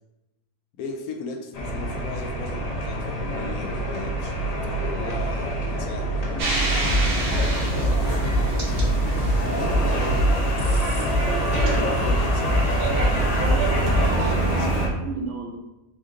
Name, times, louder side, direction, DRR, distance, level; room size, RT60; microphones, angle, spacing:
voice 1, 0.7-6.2 7.3-11.2 11.9-12.6 13.6-14.7, left 4 dB, 80° left, 5 dB, 1.1 m, -38 dB
sound 1, 1.5-14.9, right 1 dB, 40° left, 0.5 m, -26 dB
sound 2, 6.4-14.9, right 2 dB, 85° right, 1.5 m, -29 dB
sound 3, 6.8-14.3, equal, 60° left, 1.2 m, -25 dB
voice 2, 13.1-15.6, right 3 dB, 65° right, 2 dB, 0.8 m, -35 dB
4.3 x 2.6 x 3.6 m, 0.96 s
omnidirectional pair, 1.6 m